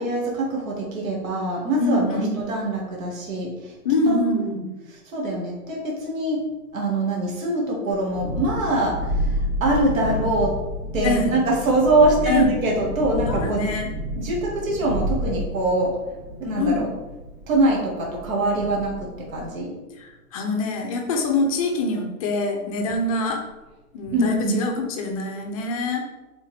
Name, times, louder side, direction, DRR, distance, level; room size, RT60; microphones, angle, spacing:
voice 1, 0.0-3.7 4.1-4.3 5.1-6.4 6.7-10.5 10.9-13.7 14.2-15.9 16.4-16.9 17.5-19.7 24.1-24.6, right 2 dB, 60° right, -3 dB, 2.1 m, -23 dB
voice 2, 1.8-2.4 3.8-4.7 11.0-11.3 12.3-12.5 13.3-13.9 16.6-16.8 20.0-23.4 23.9-26.0, left 2 dB, 25° left, 2 dB, 0.6 m, -24 dB
Thunderstorm, 7.9-19.5, equal, 15° right, 0.6 m, -30 dB
8.5 x 3.7 x 3.5 m, 1.1 s
hypercardioid pair, 160°, 44 cm